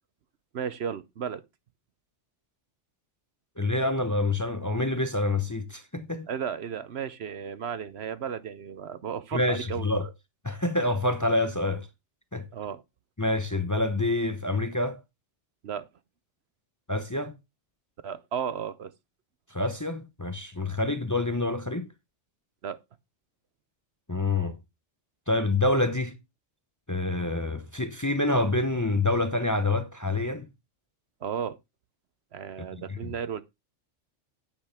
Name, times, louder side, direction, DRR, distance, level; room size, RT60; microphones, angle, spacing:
voice 1, 0.5-1.4 6.3-10.1 12.5-12.8 15.6-15.9 18.0-18.9 22.6-22.8 31.2-31.6 32.3-33.4, right 7 dB, 65° right, 0.9 m, -34 dB
voice 2, 3.6-6.3 9.3-10.1 10.4-11.9 12.3-12.5 13.2-15.0 16.9-17.3 19.5-21.9 24.1-24.6 25.3-26.2 26.9-30.5 32.6-33.1, left 2 dB, 15° left, 0.8 m, -27 dB
10.0 x 9.0 x 3.5 m
omnidirectional pair, 1.3 m